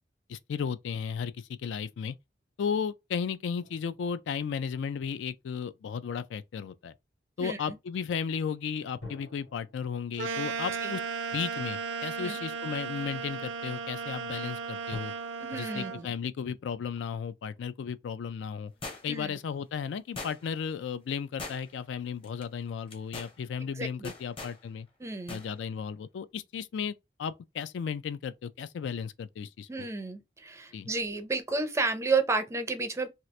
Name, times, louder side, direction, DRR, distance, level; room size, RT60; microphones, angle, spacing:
voice 1, 0.3-2.2 2.6-6.9 7.4-11.0 11.3-15.1 15.5-18.7 19.0-24.9 25.3-26.9 27.2-29.9 30.7-30.9, left 7 dB, 80° left, 0.3 m, -34 dB
sound 1, 3.5-6.1 9.0-12.4 13.1-13.2 14.9-15.0, left 3 dB, 60° left, 1.4 m, -51 dB
voice 2, 7.4-7.8 10.8-10.9 12.2-12.4 15.4-16.1 19.1-19.3 23.8-24.1 25.0-25.4 29.7-33.1, right 3 dB, 15° right, 0.4 m, -31 dB
sound 2, 10.2-16.0, right 5 dB, 80° right, 0.5 m, -35 dB
sound 3, 18.8-19.3 20.2-20.7 21.4-21.9 22.2-22.4 22.9-23.3 24.0-24.6 25.3-25.5 25.8-25.9, left 3 dB, 30° left, 0.7 m, -41 dB
2.9 x 2.4 x 3.1 m
head